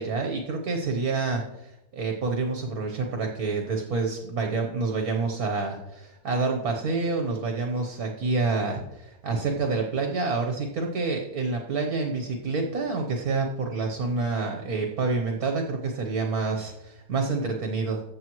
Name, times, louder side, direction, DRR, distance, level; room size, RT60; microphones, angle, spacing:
voice 1, 0.0-18.0, right 3 dB, 65° right, 3 dB, 1.5 m, -28 dB
15.0 x 7.5 x 3.1 m, 0.88 s
omnidirectional pair, 1.7 m